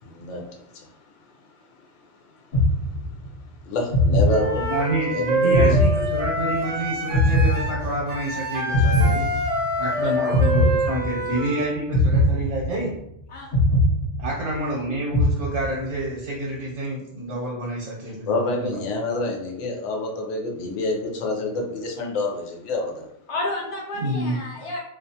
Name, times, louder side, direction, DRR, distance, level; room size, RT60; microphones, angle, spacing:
voice 1, 0.0-1.0 1.8-1.9 2.2-2.3 3.6-4.7 5.1-5.8 18.3-23.1, left 2 dB, 90° left, 1 dB, 0.9 m, -28 dB
sound 1, 2.5-3.4 3.9-5.0 5.5-6.7 7.1-8.3 8.7-9.9 10.3-11.4 11.9-13.1 13.5-14.7 15.1-16.0, left 1 dB, 55° left, 1.0 m, -21 dB
Wind instrument woodwind instrument, 4.3-11.8, right 1 dB, 40° right, 0.5 m, -26 dB
voice 2, 4.7-9.3 9.8-12.9 14.2-18.7 24.0-24.4, right 1 dB, 75° right, -4 dB, 1.0 m, -28 dB
voice 3, 10.0-10.4 13.3-13.5 23.3-24.8, left 2 dB, 40° left, -2 dB, 0.5 m, -31 dB
2.4 x 2.2 x 2.7 m, 0.77 s
omnidirectional pair, 1.2 m